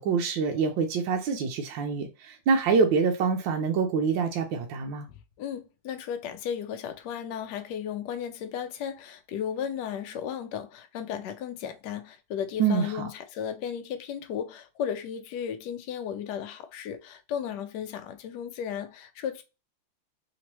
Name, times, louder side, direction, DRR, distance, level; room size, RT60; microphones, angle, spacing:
voice 1, 0.0-5.1 12.6-13.0, right 5 dB, 75° right, 1.2 m, -26 dB
voice 2, 5.1-19.4, left 8 dB, 80° left, 0.9 m, -35 dB
3.6 x 2.9 x 2.9 m
omnidirectional pair, 2.4 m